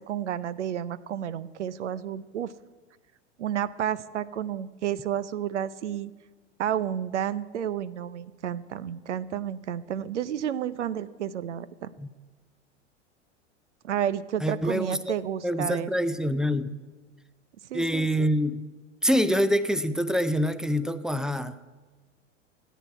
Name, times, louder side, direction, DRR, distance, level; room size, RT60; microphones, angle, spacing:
voice 1, 0.0-2.5 3.4-6.1 6.6-11.9 13.8-15.9 17.7-18.3, right 10 dB, 70° right, 17 dB, 0.7 m, -31 dB
voice 2, 14.4-15.1 15.4-16.8 17.7-18.6 19.0-21.6, equal, ahead, 13 dB, 0.4 m, -25 dB
15.0 x 9.2 x 9.4 m, 1.3 s
figure-of-eight pair, 85°, 36 cm